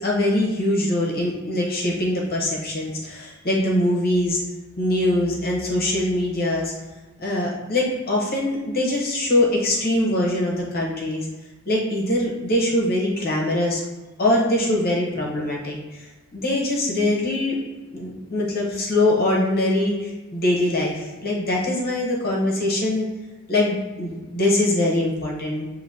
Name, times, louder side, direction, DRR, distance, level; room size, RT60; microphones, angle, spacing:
voice 1, 0.0-4.4 4.8-6.7 7.2-11.3 11.7-13.8 14.2-16.0 16.3-17.6 17.9-23.1 23.5-25.7, left 1 dB, 45° left, -3 dB, 1.0 m, -23 dB
6.6 x 2.7 x 2.8 m, 1.2 s
head